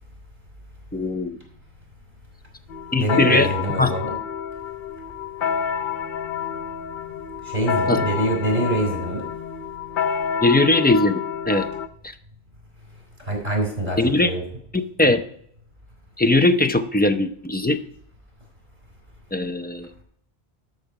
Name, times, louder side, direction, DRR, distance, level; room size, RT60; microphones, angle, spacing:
voice 1, 0.9-1.4 2.9-3.5 3.8-3.9 7.9-8.0 10.4-11.7 14.0-14.3 14.7-15.2 16.2-17.8 19.3-20.0, left 2 dB, 15° left, 8 dB, 0.4 m, -20 dB
sound 1, 2.7-11.9, left 7 dB, 60° left, 0.7 m, -28 dB
voice 2, 3.0-4.1 7.4-9.2 13.2-14.4, right 1 dB, 45° right, 1 dB, 3.9 m, -24 dB
12.0 x 6.4 x 4.7 m, 0.68 s
omnidirectional pair, 1.1 m